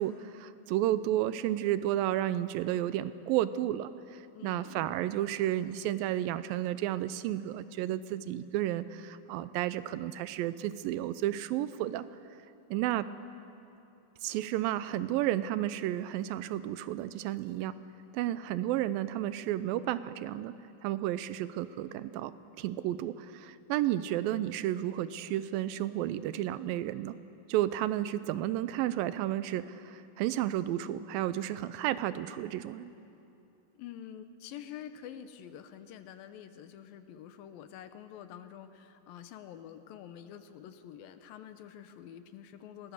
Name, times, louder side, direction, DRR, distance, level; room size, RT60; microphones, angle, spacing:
voice 1, 0.0-12.1 12.7-13.1 14.2-17.7 18.1-20.5 20.8-27.2 27.5-32.9, right 13 dB, 85° right, 14 dB, 2.4 m, -32 dB
voice 2, 4.3-4.8 12.8-13.0 33.7-42.9, left 9 dB, 80° left, 10 dB, 2.7 m, -47 dB
24.5 x 18.5 x 6.7 m, 2.8 s
omnidirectional pair, 4.1 m